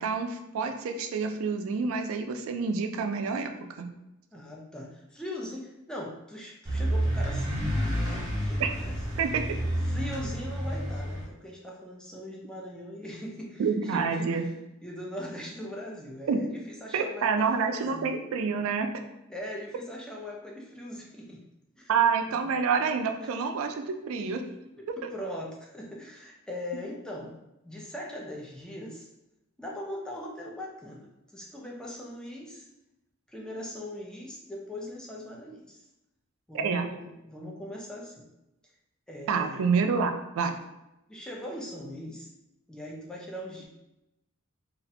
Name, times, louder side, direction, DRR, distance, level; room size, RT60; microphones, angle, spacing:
voice 1, 0.0-3.9 8.6-8.7 9.2-9.5 13.6-14.4 16.3-16.4 16.9-18.9 21.9-24.4 24.9-25.1 36.5-36.9 39.3-40.5, right 5 dB, 75° right, 6 dB, 0.3 m, -28 dB
voice 2, 4.3-8.9 9.8-14.5 14.8-18.2 19.3-21.4 21.8-21.9 22.3-22.5 24.8-27.3 27.6-29.1 29.6-32.7 33.3-35.9 36.5-38.3 39.1-39.6 41.1-42.3 42.7-43.7, left 1 dB, 5° left, -2 dB, 0.4 m, -40 dB
sound 1, 6.6-11.2, equal, 15° right, 0.9 m, -29 dB
2.4 x 2.1 x 2.7 m, 0.91 s
head